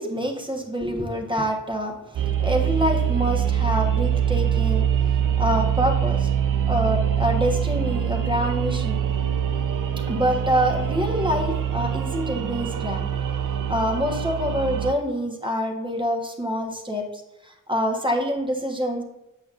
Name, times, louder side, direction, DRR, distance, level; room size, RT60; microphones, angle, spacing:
voice 1, 0.0-4.9 5.4-6.3 6.7-9.0 10.1-13.1 13.7-19.0, equal, 15° right, 2 dB, 1.2 m, -26 dB
sound 1, 2.1-14.9, right 9 dB, 75° right, 0.6 m, -24 dB
7.8 x 7.1 x 2.5 m, 0.91 s
wide cardioid pair, 100°, 32 cm